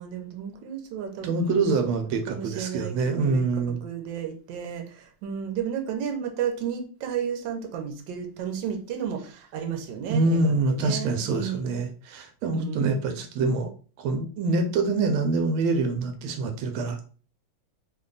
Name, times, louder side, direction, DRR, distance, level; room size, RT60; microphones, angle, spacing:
voice 1, 0.0-11.7 12.5-12.9, right 8 dB, 70° right, 4 dB, 1.3 m, -33 dB
voice 2, 1.2-3.8 10.1-13.7 14.0-17.0, right 3 dB, 90° right, 6 dB, 1.4 m, -25 dB
3.4 x 2.2 x 3.8 m, 0.39 s
omnidirectional pair, 2.2 m